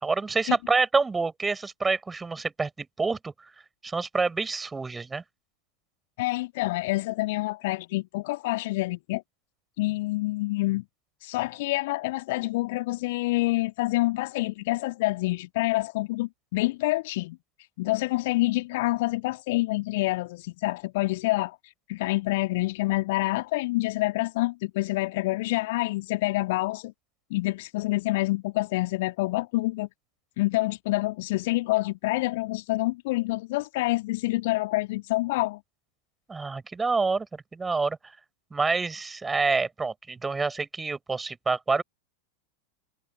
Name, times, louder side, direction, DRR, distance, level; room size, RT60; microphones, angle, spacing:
voice 1, 0.0-3.5 3.8-5.2 36.3-38.2 38.5-41.8, right 4 dB, 10° right, 6.3 m, -27 dB
voice 2, 6.2-9.2 9.8-10.8 11.2-17.4 17.8-21.6 21.9-26.9 27.3-29.9 30.4-35.6, left 20 dB, 50° left, 1.9 m, -27 dB
figure-of-eight pair, 90°, 0 cm